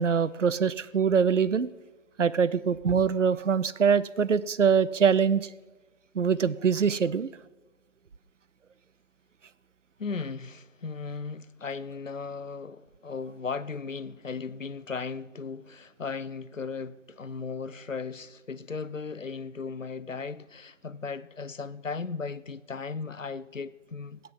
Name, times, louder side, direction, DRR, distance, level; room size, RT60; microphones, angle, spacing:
voice 1, 0.0-1.7 2.2-5.5 6.2-7.3, right 6 dB, 70° right, 0.7 m, -24 dB
voice 2, 10.0-24.2, left 5 dB, 80° left, 0.9 m, -36 dB
19.0 x 9.4 x 5.4 m
figure-of-eight pair, 160°, 38 cm